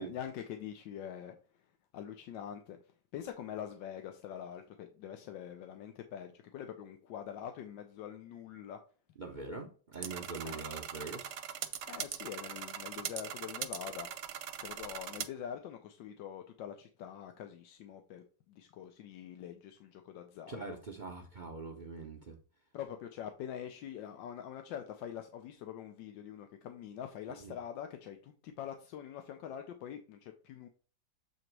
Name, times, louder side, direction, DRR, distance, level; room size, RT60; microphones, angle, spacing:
voice 1, 0.0-1.6 1.9-2.8 3.1-8.8 10.4-10.6 11.8-14.1 14.6-20.8 22.7-30.7, left 9 dB, 90° left, 1.4 m, -44 dB
voice 2, 9.2-11.4 20.5-22.4 27.4-27.5, right 4 dB, 50° right, 0.5 m, -43 dB
sound 1, 9.9-15.3, right 9 dB, 75° right, 1.3 m, -41 dB
7.9 x 2.9 x 4.6 m
omnidirectional pair, 2.0 m